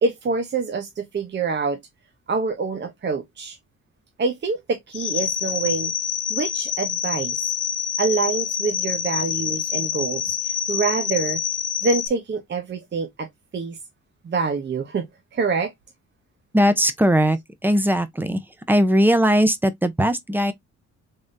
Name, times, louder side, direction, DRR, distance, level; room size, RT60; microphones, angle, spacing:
voice 1, 0.0-1.8 2.3-3.6 4.2-5.9 6.3-7.4 8.0-11.4 11.8-13.3 13.5-13.8 14.2-15.1 15.3-15.7, right 4 dB, 35° right, 0.8 m, -25 dB
sound 1, 4.9-12.1, left 8 dB, 55° left, 0.7 m, -26 dB
voice 2, 16.5-18.4 18.7-20.5, equal, 5° right, 0.6 m, -19 dB
3.7 x 3.4 x 2.6 m
cardioid pair, 90°, 30 cm